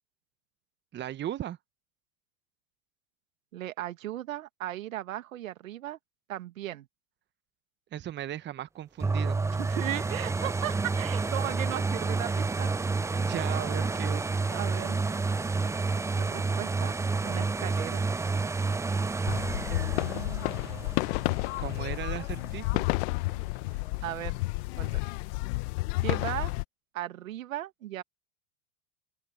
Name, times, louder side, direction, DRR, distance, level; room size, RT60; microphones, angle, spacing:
voice 1, 0.9-1.6 7.9-9.4 13.1-14.2 21.6-22.8, right 11 dB, 25° right, 1.3 m, -37 dB
voice 2, 3.5-6.0 6.3-6.9 9.6-12.7 14.5-15.0 16.1-16.9 17.2-18.1 19.7-20.6 23.7-24.4 24.8-25.0 26.0-26.5 26.9-28.0, right 13 dB, 70° right, 1.9 m, -36 dB
sound 1, 9.0-22.7 23.2-23.3, right 4 dB, 5° right, 0.7 m, -30 dB
sound 2, 19.3-26.6, left 24 dB, 50° left, 1.3 m, -31 dB
open air
hypercardioid pair, 100°, 41 cm